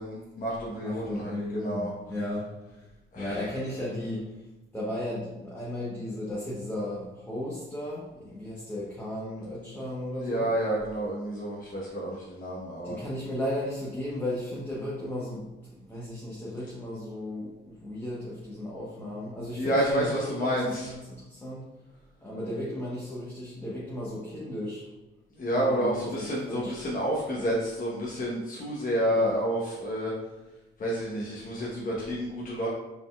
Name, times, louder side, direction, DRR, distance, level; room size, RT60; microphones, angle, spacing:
voice 1, 0.0-1.9 3.1-3.3 10.2-13.0 19.6-20.9 25.4-30.1 30.8-32.7, equal, 45° left, -5 dB, 1.0 m, -29 dB
voice 2, 0.8-2.8 3.1-4.4 4.7-10.5 12.8-21.7 22.2-24.9 25.5-26.8 29.0-29.3, left 1 dB, 10° left, -6 dB, 1.0 m, -35 dB
4.8 x 3.9 x 2.3 m, 1.0 s
cardioid pair, 90°, 20 cm